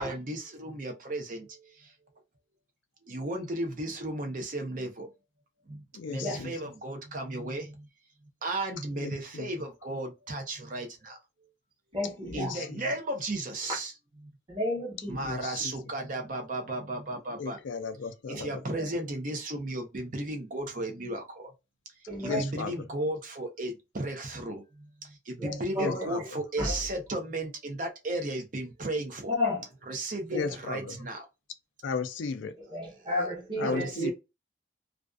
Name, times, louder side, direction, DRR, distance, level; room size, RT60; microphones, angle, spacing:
voice 1, 0.0-1.9 3.0-5.1 5.7-7.9 8.4-11.2 12.3-13.9 15.1-17.6 18.3-21.5 22.2-29.3 29.9-31.2 33.6-34.1, right 1 dB, 45° right, 0.6 m, -35 dB
voice 2, 5.9-6.5 8.9-9.6 12.2-12.8 15.2-15.7 17.4-18.8 22.2-22.8 25.8-26.2 30.3-31.0 31.8-32.5 33.6-34.1, left 4 dB, 80° left, 0.4 m, -35 dB
voice 3, 11.9-12.6 14.5-15.3 18.7-18.9 22.1-22.4 25.4-26.1 26.6-26.8 29.3-29.6 30.3-30.5 32.6-34.1, left 1 dB, 25° right, 1.0 m, -32 dB
2.4 x 2.3 x 2.3 m
head